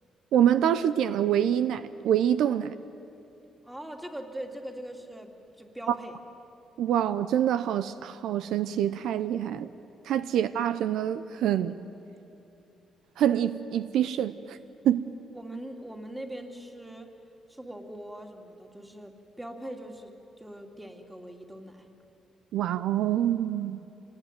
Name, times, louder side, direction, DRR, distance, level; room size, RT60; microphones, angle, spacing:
voice 1, 0.3-2.7 6.8-9.7 10.1-11.8 13.2-14.6 14.8-15.0 22.5-23.8, right 10 dB, 80° right, 0.7 m, -26 dB
voice 2, 3.6-5.3 5.6-6.2 15.3-17.1 17.5-21.9, right 1 dB, 5° right, 2.8 m, -41 dB
26.5 x 20.0 x 9.3 m
cardioid pair, 90°, 0 cm